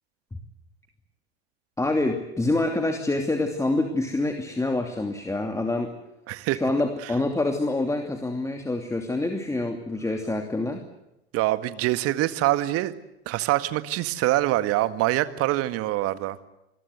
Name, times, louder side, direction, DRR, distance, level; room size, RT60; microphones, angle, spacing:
voice 1, 1.8-5.9 6.5-10.8, left 2 dB, 10° left, 5 dB, 2.7 m, -26 dB
voice 2, 6.3-6.6 11.3-12.9 13.3-16.4, right 16 dB, 45° right, 12 dB, 1.9 m, -24 dB
27.5 x 21.0 x 8.2 m, 0.90 s
figure-of-eight pair, 85°, 33 cm